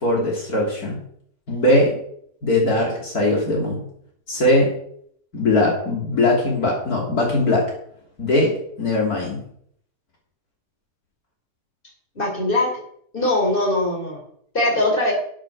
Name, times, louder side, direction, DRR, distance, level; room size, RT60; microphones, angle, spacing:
voice 1, 0.0-1.0 1.5-2.0 2.4-3.8 4.3-4.7 5.3-7.7 8.2-9.4, left 1 dB, 65° left, -2 dB, 3.5 m, -20 dB
voice 2, 12.2-12.8 13.1-14.2 14.5-15.1, left 1 dB, 30° left, 0 dB, 3.8 m, -21 dB
12.0 x 7.3 x 6.3 m, 0.66 s
omnidirectional pair, 1.7 m